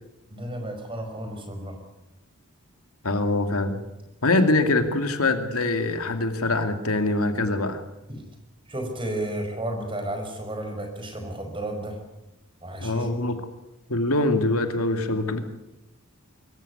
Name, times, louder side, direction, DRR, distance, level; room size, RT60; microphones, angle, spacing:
voice 1, 0.3-1.8 8.1-8.2 8.7-12.0 12.6-13.1, right 1 dB, 25° right, 4 dB, 5.7 m, -32 dB
voice 2, 3.0-3.8 4.2-7.8 12.8-13.4 13.9-15.4, left 2 dB, 80° left, 7 dB, 2.5 m, -23 dB
24.0 x 15.0 x 9.7 m, 0.93 s
head